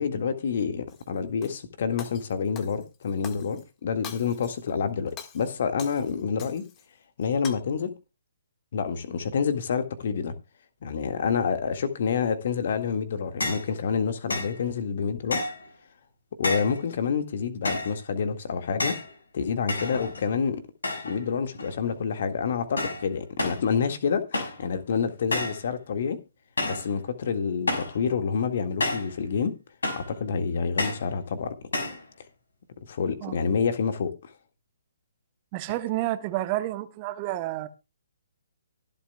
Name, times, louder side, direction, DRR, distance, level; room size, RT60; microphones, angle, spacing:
voice 1, 0.0-6.7 7.2-7.9 8.7-10.3 10.8-15.4 16.4-19.0 19.3-20.6 21.0-26.2 26.6-29.6 29.9-31.6 32.9-34.3, left 6 dB, 45° left, 1.8 m, -28 dB
Shatter, 0.9-1.6 2.0-3.6 4.0-4.7 5.1-6.9 7.2-7.5, left 8 dB, 20° left, 1.6 m, -45 dB
sound 1, 13.4-13.7 14.3-14.6 15.3-15.7 16.4-16.8 17.6-18.0 18.8-19.1 19.7-20.3 20.8-21.2 21.5-22.0 22.8-23.1 23.4-23.7 24.3-24.6 25.3-25.6 26.6-26.9 27.7-28.0 28.8-29.1 29.8-30.1 30.8-31.1 31.7-32.0, left 2 dB, 65° left, 5.5 m, -30 dB
voice 2, 35.5-37.7, right 15 dB, 25° right, 1.1 m, -30 dB
24.0 x 8.2 x 2.3 m
figure-of-eight pair, 130°, 0 cm